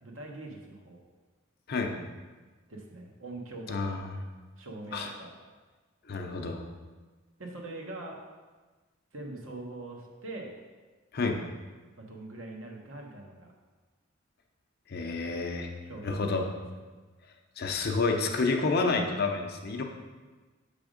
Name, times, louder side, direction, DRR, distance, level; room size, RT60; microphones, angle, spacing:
voice 1, 0.0-1.0 2.7-4.0 4.6-5.3 7.4-8.2 9.1-10.5 12.0-13.5 15.8-16.2, right 2 dB, 70° right, 0 dB, 1.0 m, -42 dB
voice 2, 3.7-4.2 4.9-5.1 6.1-6.6 11.1-11.4 14.9-15.7 16.0-16.5 17.6-19.8, left 3 dB, 50° left, 3 dB, 0.6 m, -29 dB
6.2 x 3.5 x 5.0 m, 1.3 s
head